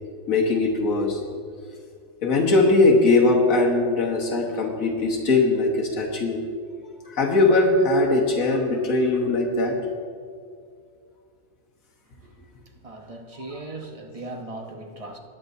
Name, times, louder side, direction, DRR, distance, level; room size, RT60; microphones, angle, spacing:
voice 1, 0.3-1.2 2.2-6.4 7.0-9.8, left 2 dB, 85° left, -1 dB, 1.6 m, -20 dB
voice 2, 12.8-15.2, right 2 dB, 30° right, 3 dB, 0.7 m, -37 dB
19.0 x 8.6 x 2.7 m, 2.2 s
omnidirectional pair, 1.4 m